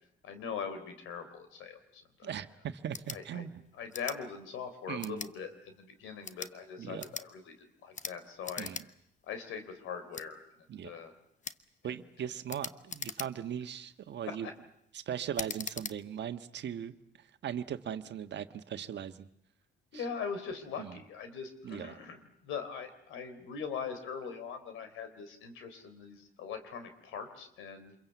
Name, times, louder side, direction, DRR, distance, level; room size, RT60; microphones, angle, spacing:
voice 1, 0.2-2.3 3.1-3.5 3.7-8.7 9.3-11.2 11.9-12.0 14.4-14.5 17.9-18.0 19.9-28.0, left 6 dB, 90° left, 9 dB, 3.7 m, -41 dB
voice 2, 2.2-3.6 4.9-5.2 6.8-7.0 8.6-8.8 10.7-11.0 11.8-14.5 14.9-19.3 19.9-20.0 20.8-20.9 21.6-22.0, right 9 dB, 60° right, 9 dB, 1.4 m, -39 dB
sound 1, 2.9-3.2 3.9-4.2 5.0-5.3 6.1-6.5 7.0-7.3 7.9-8.2 8.4-8.9 9.2-9.3 10.1-10.3 11.4-11.6 12.5-13.6 14.1-14.4 15.3-16.0, left 6 dB, 40° left, 1.0 m, -41 dB
27.0 x 22.5 x 8.2 m, 0.74 s
cardioid pair, 90°, 20 cm